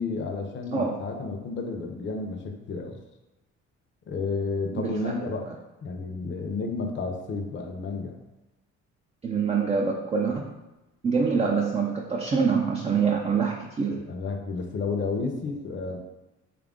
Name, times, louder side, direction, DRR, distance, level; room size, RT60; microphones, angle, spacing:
voice 1, 0.0-3.0 4.1-5.5 5.8-8.2 13.9-16.0, left 3 dB, 35° left, 2 dB, 0.6 m, -31 dB
voice 2, 4.7-5.1 5.5-5.6 9.2-10.5 11.0-14.0, right 5 dB, 20° right, 1 dB, 0.4 m, -25 dB
3.3 x 2.4 x 3.6 m, 1.0 s
hypercardioid pair, 60°, 34 cm